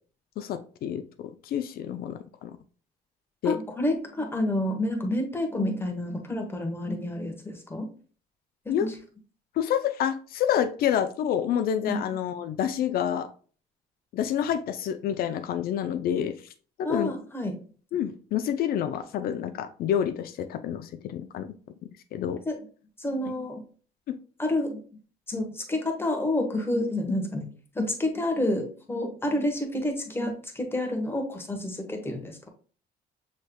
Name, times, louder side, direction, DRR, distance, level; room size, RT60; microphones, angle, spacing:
voice 1, 0.4-2.5 3.4-3.6 8.7-8.9 9.6-13.3 14.1-16.3 16.8-17.1 17.9-21.5 22.1-22.4, left 9 dB, 65° left, 9 dB, 0.4 m, -28 dB
voice 2, 3.4-7.9 8.6-8.9 11.9-12.0 16.8-17.5 22.5-22.6 23.0-23.6 24.4-24.8 25.3-27.5 27.7-32.5, left 1 dB, 15° left, 3 dB, 1.1 m, -29 dB
6.4 x 3.2 x 2.2 m, 0.41 s
cardioid pair, 110°, 17 cm